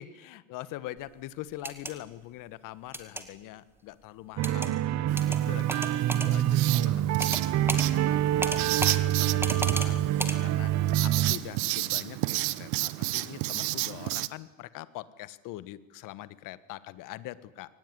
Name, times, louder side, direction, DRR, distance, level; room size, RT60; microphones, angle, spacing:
voice 1, 0.0-10.7 11.0-17.7, left 15 dB, 55° left, 15 dB, 1.5 m, -44 dB
sound 1, 1.5-1.9 2.9-3.2 4.4-4.7 5.2-5.4 5.7-6.3 7.2-7.4 7.7-7.9 8.4-9.0 9.4-9.9 10.2-10.4, right 1 dB, 5° right, 2.1 m, -32 dB
sound 2, 4.4-11.3, right 12 dB, 45° right, 1.1 m, -26 dB
Writing, 5.1-14.3, right 21 dB, 70° right, 1.0 m, -33 dB
22.5 x 19.0 x 9.8 m, 1.1 s
supercardioid pair, 125°, 39 cm